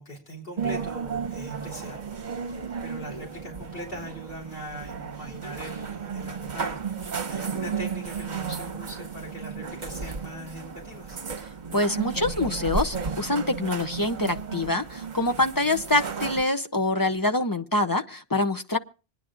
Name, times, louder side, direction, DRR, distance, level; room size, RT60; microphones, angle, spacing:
voice 1, 0.0-2.0 2.3-11.2, equal, 65° left, 3.8 m, -41 dB
sound 1, 0.6-16.4, right 5 dB, 50° right, 1.0 m, -34 dB
voice 2, 11.7-18.8, left 2 dB, 30° left, 0.5 m, -25 dB
26.5 x 9.9 x 2.5 m
omnidirectional pair, 1.0 m